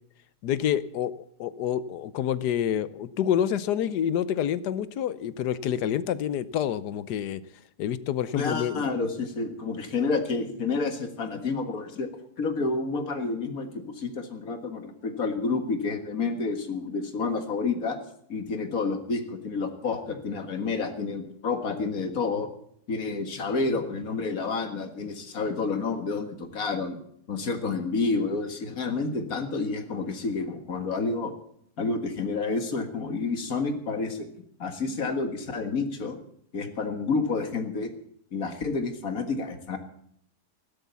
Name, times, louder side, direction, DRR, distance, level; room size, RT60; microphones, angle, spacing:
voice 1, 0.4-7.4 7.8-8.9, left 10 dB, 85° left, 16 dB, 1.4 m, -28 dB
voice 2, 8.3-12.1 12.4-18.0 18.3-22.5 22.9-27.0 27.3-31.3 31.8-34.3 34.6-36.2 36.5-37.9 38.3-39.8, left 4 dB, 60° left, 7 dB, 2.2 m, -29 dB
16.0 x 12.0 x 7.0 m, 0.68 s
omnidirectional pair, 1.7 m